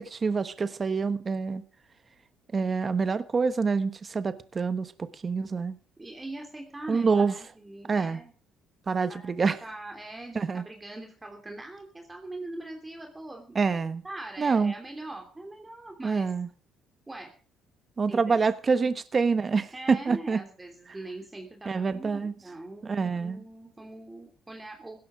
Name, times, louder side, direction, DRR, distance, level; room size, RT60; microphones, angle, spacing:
voice 1, 0.0-1.6 2.5-5.8 6.9-7.3 7.9-8.2 8.9-9.6 10.3-10.6 13.5-14.0 14.4-14.7 16.0-16.5 18.0-20.4 21.6-22.3 22.8-23.4, right 4 dB, 30° right, 1.2 m, -26 dB
voice 2, 6.0-8.3 9.1-13.6 14.0-16.3 17.1-17.3 18.1-18.4 19.7-25.0, right 2 dB, 15° right, 3.0 m, -42 dB
16.5 x 13.0 x 5.0 m
cardioid pair, 115°, 0 cm